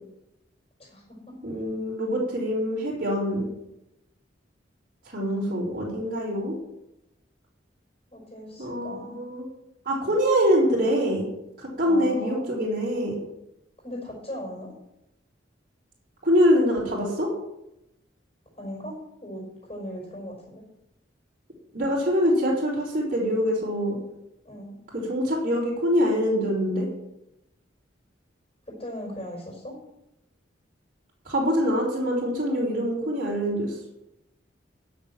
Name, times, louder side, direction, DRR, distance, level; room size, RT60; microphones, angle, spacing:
voice 1, 0.8-1.4 8.1-9.2 11.8-12.6 13.8-14.7 18.6-20.6 24.4-24.8 28.7-29.8, equal, 30° left, -4 dB, 5.3 m, -38 dB
voice 2, 1.4-3.5 5.1-6.6 8.6-9.5 9.8-11.3 11.6-13.2 16.2-17.3 21.7-24.0 24.9-26.9 31.3-33.8, equal, 45° right, -7 dB, 4.1 m, -24 dB
10.5 x 7.0 x 7.4 m, 0.87 s
head